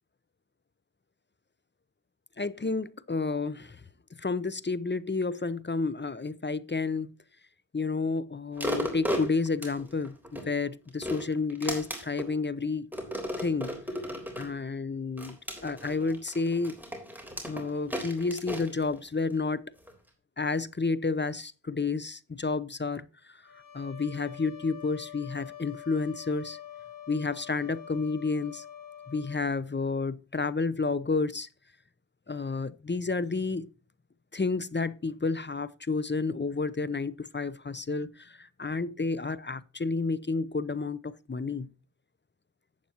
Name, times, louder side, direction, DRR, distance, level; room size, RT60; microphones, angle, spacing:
voice 1, 2.4-3.8 4.2-7.1 7.7-12.9 13.4-13.8 14.3-16.8 17.5-19.7 20.4-23.4 23.7-26.6 27.1-28.6 29.1-31.5 32.3-33.7 34.3-41.7, left 4 dB, 25° left, 0.6 m, -31 dB
sound 1, 8.6-10.5 10.9-12.3 12.9-14.5 15.2-19.4 19.9-20.0, equal, 5° right, 3.5 m, -35 dB
sound 2, 23.4-29.5, left 10 dB, 45° left, 2.1 m, -45 dB
11.5 x 8.8 x 2.9 m
cardioid pair, 40°, 44 cm